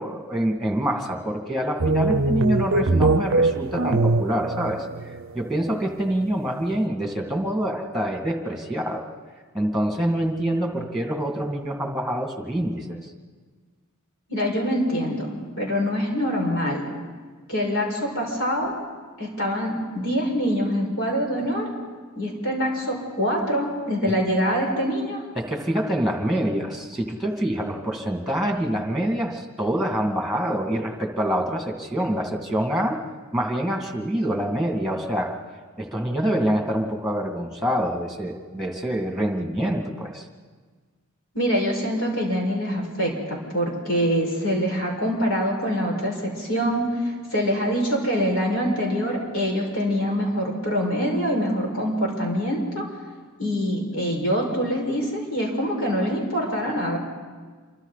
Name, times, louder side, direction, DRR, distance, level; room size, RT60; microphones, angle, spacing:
voice 1, 0.0-4.8 5.3-9.1 9.5-13.1 25.4-33.0 33.3-35.3 35.8-40.2, right 1 dB, ahead, 2 dB, 2.2 m, -26 dB
sound 1, 1.8-5.4, right 3 dB, 60° right, 0.6 m, -22 dB
voice 2, 14.3-15.3 15.6-16.8 17.5-18.7 19.2-21.7 22.2-25.2 41.3-52.9 53.4-57.0, equal, 65° left, 0 dB, 5.7 m, -24 dB
28.0 x 24.5 x 4.1 m, 1.5 s
head